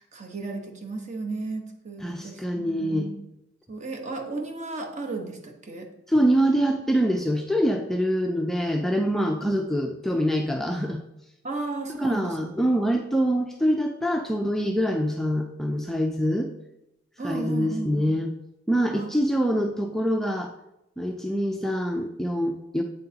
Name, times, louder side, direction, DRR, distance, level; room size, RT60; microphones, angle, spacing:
voice 1, 0.0-3.2 3.7-5.9 9.4-9.5 11.4-12.5 17.2-18.1 18.9-19.1, right 3 dB, 40° right, 3 dB, 1.2 m, -34 dB
voice 2, 2.0-3.1 6.1-11.0 12.0-16.5 17.2-18.3 18.7-20.5 21.0-22.8, equal, ahead, 2 dB, 0.4 m, -25 dB
8.7 x 7.6 x 2.9 m, 0.86 s
head